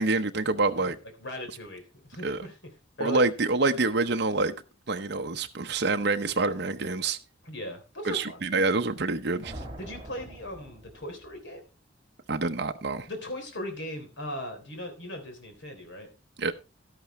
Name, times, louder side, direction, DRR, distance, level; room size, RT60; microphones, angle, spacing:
voice 1, 0.0-1.0 2.2-2.4 3.0-4.5 4.9-7.2 8.0-9.5 12.3-13.1 16.4-16.5, right 3 dB, 60° right, 0.8 m, -26 dB
voice 2, 0.8-2.6 3.0-3.2 7.4-8.4 9.8-11.6 13.1-16.1, equal, 75° left, 3.5 m, -38 dB
sound 1, 9.4-11.4, right 1 dB, 25° right, 2.8 m, -43 dB
12.5 x 11.0 x 3.2 m
head